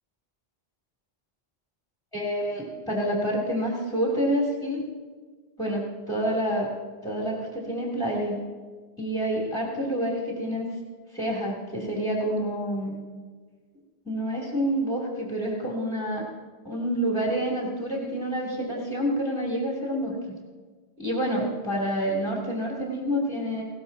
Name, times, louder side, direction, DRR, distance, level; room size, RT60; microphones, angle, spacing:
voice 1, 2.1-4.8 5.6-6.7 7.0-8.4 9.0-10.7 11.1-13.0 14.0-16.2 16.6-20.2 21.0-23.6, equal, 5° left, -5 dB, 3.0 m, -28 dB
20.0 x 17.5 x 2.8 m, 1.4 s
omnidirectional pair, 1.1 m